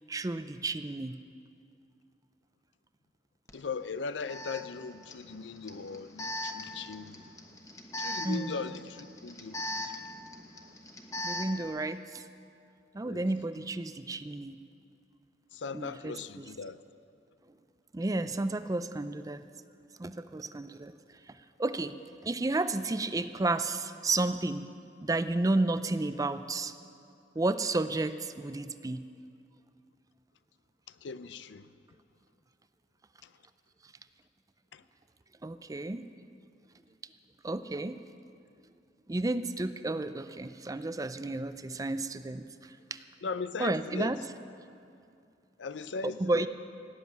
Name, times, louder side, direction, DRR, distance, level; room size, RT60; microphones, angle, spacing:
voice 1, 0.1-1.2 8.2-8.5 11.2-12.2 12.9-14.6 15.7-16.5 17.9-19.4 20.0-22.0 22.2-24.6 25.0-26.7 27.4-29.1 35.4-36.0 37.4-38.0 39.1-43.0 43.6-44.2 46.2-46.5, right 2 dB, 20° right, 0.4 m, -32 dB
voice 2, 3.5-7.2 8.0-10.0 13.0-13.3 15.5-16.8 30.9-31.7 33.2-33.3 34.7-34.8 43.2-44.2 45.6-46.5, left 4 dB, 90° left, 0.5 m, -39 dB
Alarm, 3.5-3.6 4.3-11.7, left 1 dB, 20° left, 1.1 m, -40 dB
18.0 x 7.4 x 9.5 m
head